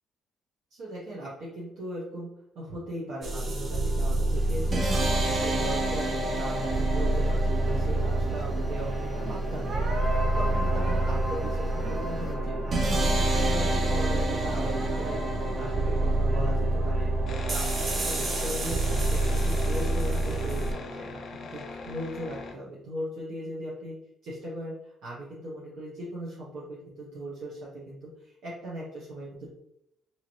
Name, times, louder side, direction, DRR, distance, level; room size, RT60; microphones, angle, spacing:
voice 1, 0.7-4.8 5.1-6.1 6.3-9.9 10.2-15.2 15.5-17.1 17.5-17.7 17.9-23.9 24.2-29.5, right 1 dB, 75° right, -7 dB, 0.8 m, -38 dB
sound 1, 3.2-20.7, right 2 dB, 45° right, 0.6 m, -27 dB
sound 2, 4.3-12.3, left 1 dB, 10° left, 0.6 m, -46 dB
sound 3, 17.3-22.5, left 3 dB, 60° left, 0.5 m, -40 dB
2.9 x 2.5 x 3.0 m, 0.81 s
supercardioid pair, 70°, 0 cm